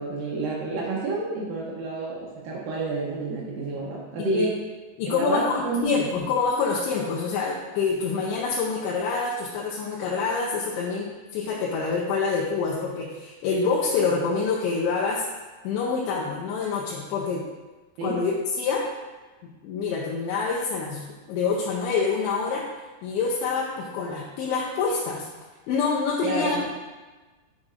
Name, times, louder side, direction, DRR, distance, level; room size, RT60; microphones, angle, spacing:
voice 1, 0.0-4.5 5.1-6.1 18.0-18.2 26.2-26.8, right 3 dB, 85° right, -4 dB, 2.0 m, -29 dB
voice 2, 5.0-15.2 15.6-17.4 18.0-18.9 19.4-22.6 23.0-25.3 25.7-26.8, left 5 dB, 85° left, -3 dB, 3.0 m, -26 dB
7.0 x 6.4 x 2.5 m, 1.2 s
omnidirectional pair, 5.2 m